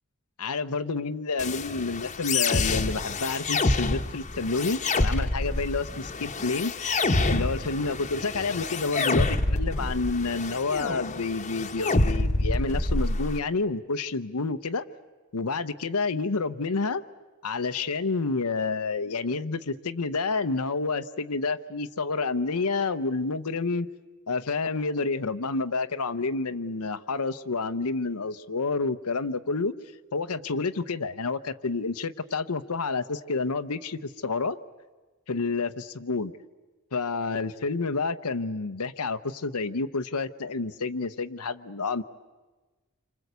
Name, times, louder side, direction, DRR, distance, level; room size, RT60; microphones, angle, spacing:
voice 1, 0.4-6.7 7.3-14.8 15.3-17.0 17.4-23.9 24.3-29.7 30.1-34.6 35.3-36.3 36.9-42.0, left 4 dB, 85° left, 10 dB, 0.9 m, -29 dB
sound 1, 1.4-13.4, left 2 dB, 35° left, 1.1 m, -27 dB
28.0 x 25.5 x 8.2 m, 1.3 s
head